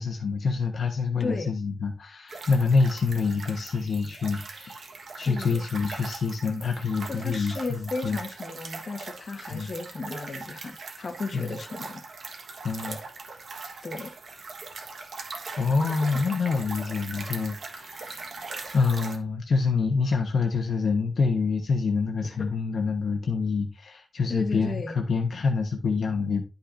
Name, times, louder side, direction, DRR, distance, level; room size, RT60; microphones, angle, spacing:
voice 1, 0.0-4.8 5.2-8.2 9.5-9.7 11.3-11.5 12.6-13.0 15.6-18.2 18.7-26.4, left 4 dB, 60° left, 1.0 m, -26 dB
voice 2, 1.2-1.5 5.2-5.6 7.0-12.0 13.8-14.2 24.3-25.0, left 3 dB, 45° left, 1.4 m, -34 dB
sound 1, 2.3-19.2, right 3 dB, 60° right, 1.4 m, -40 dB
11.5 x 5.5 x 2.6 m
wide cardioid pair, 140°, 0 cm